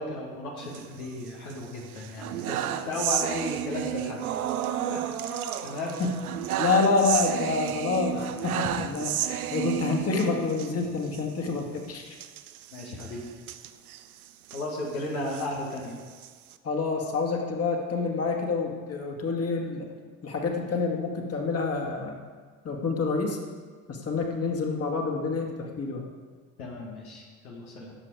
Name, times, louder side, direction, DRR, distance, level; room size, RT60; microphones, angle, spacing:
voice 1, 0.0-4.2 4.9-6.0 12.7-13.2 14.5-16.0 26.6-27.9, left 2 dB, 75° left, -2 dB, 2.1 m, -35 dB
sound 1, 0.6-1.5 1.9-10.7 11.1-11.2 11.5-11.6 12.1-14.7 15.1-16.5, right 10 dB, 70° right, 0.8 m, -32 dB
voice 2, 6.6-12.2 16.6-19.9 20.2-22.2 22.6-23.4 23.9-26.0, left 4 dB, 30° left, 1 dB, 2.3 m, -27 dB
16.0 x 7.7 x 4.8 m, 1.5 s
figure-of-eight pair, 60°, 44 cm